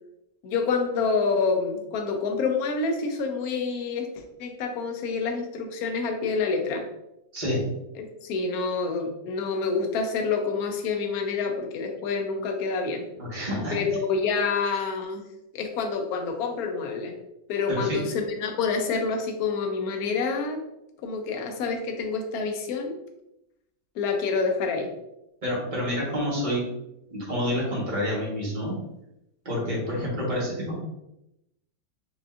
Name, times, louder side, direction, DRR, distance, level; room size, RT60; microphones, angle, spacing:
voice 1, 0.4-6.8 8.0-13.1 13.7-15.2 15.5-17.2 17.5-20.6 21.0-22.9 24.0-24.9, left 4 dB, 70° left, 3 dB, 0.9 m, -27 dB
voice 2, 7.3-7.7 13.2-13.8 17.7-18.1 25.4-26.6 27.1-28.7 29.4-30.8, equal, 30° right, -5 dB, 1.1 m, -28 dB
5.0 x 2.6 x 2.4 m, 0.87 s
omnidirectional pair, 2.1 m